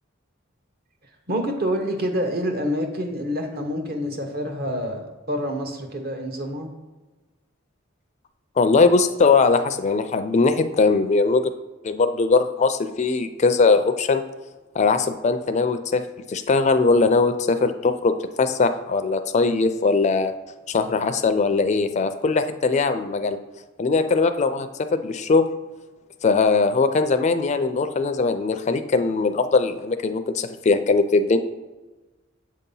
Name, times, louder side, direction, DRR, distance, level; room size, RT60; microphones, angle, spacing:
voice 1, 1.3-6.7, equal, 50° right, 3 dB, 0.9 m, -27 dB
voice 2, 8.6-11.4 11.8-14.2 14.7-16.0 16.3-18.1 18.4-20.3 20.7-23.4 23.8-25.5 26.2-31.4, left 4 dB, 35° left, 9 dB, 0.3 m, -20 dB
7.4 x 2.8 x 5.4 m, 1.2 s
head